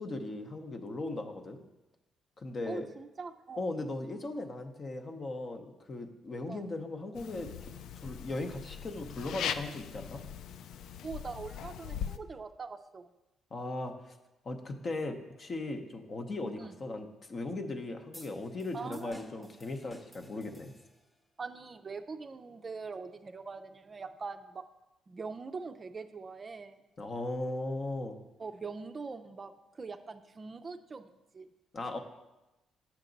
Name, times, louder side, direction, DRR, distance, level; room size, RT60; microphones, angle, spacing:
voice 1, 0.0-1.6 2.4-2.9 3.6-7.5 8.0-10.2 13.5-14.2 14.4-20.7 27.0-28.2 31.7-32.0, left 2 dB, 40° left, 5 dB, 0.8 m, -38 dB
voice 2, 2.7-3.7 6.5-6.6 11.0-13.1 16.6-16.7 18.7-19.5 21.4-24.6 25.1-26.8 28.4-31.5, right 4 dB, 35° right, 8 dB, 0.4 m, -43 dB
sound 1, 7.2-12.2, left 8 dB, 80° left, 0.3 m, -40 dB
sound 2, 18.1-21.2, left 1 dB, 15° left, 1.0 m, -54 dB
7.3 x 5.8 x 3.9 m, 0.99 s
cardioid pair, 90°, 0 cm